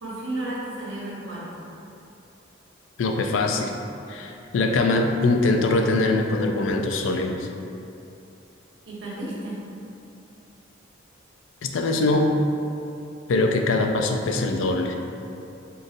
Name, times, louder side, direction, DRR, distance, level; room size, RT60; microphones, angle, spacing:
voice 1, 0.0-1.6 8.9-9.6, right 1 dB, 80° right, -6 dB, 1.0 m, -33 dB
voice 2, 3.0-3.7 4.1-7.5 11.6-12.3 13.3-15.0, left 2 dB, 85° left, 3 dB, 0.4 m, -22 dB
3.9 x 3.8 x 2.5 m, 2.8 s
head